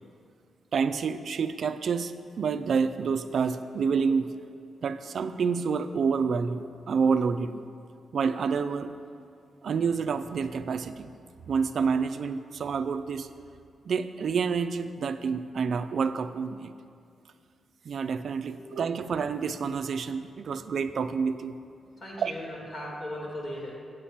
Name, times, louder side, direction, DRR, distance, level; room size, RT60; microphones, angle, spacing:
voice 1, 0.7-4.3 4.8-7.7 8.1-8.9 9.6-11.1 11.5-13.3 13.9-16.7 17.8-21.6 22.2-22.3, right 5 dB, 60° right, 10 dB, 0.3 m, -28 dB
voice 2, 22.0-23.8, left 1 dB, 45° left, -3 dB, 2.3 m, -38 dB
8.7 x 7.9 x 4.3 m, 2.4 s
wide cardioid pair, 135°, 0 cm